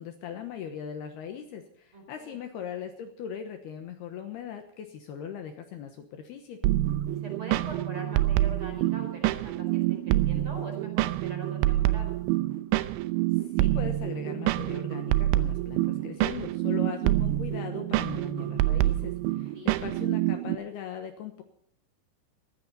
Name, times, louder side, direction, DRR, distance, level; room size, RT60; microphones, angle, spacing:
voice 1, 0.0-6.6 13.4-21.4, left 8 dB, 70° left, 6 dB, 2.8 m, -39 dB
voice 2, 1.9-2.3 7.2-12.2 19.5-19.7, right 1 dB, 30° right, 3 dB, 4.7 m, -43 dB
sound 1, 6.6-20.6, right 15 dB, 80° right, 3.0 m, -27 dB
19.0 x 15.0 x 4.2 m, 0.66 s
omnidirectional pair, 5.4 m